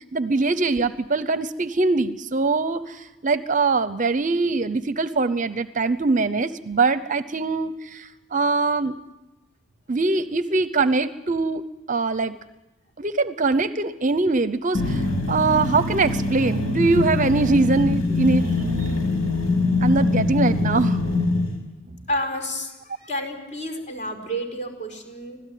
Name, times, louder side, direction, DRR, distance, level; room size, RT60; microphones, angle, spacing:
voice 1, 0.1-3.0 3.2-8.0 8.3-8.9 9.9-11.6 11.9-12.3 13.0-15.0 15.3-18.5 19.8-21.0, right 3 dB, 40° right, 14 dB, 0.7 m, -22 dB
sound 1, 14.7-21.5, left 2 dB, 90° left, 6.4 m, -23 dB
voice 2, 22.1-22.7 23.0-25.4, equal, 35° left, 4 dB, 4.7 m, -30 dB
25.5 x 16.5 x 9.3 m, 1.0 s
head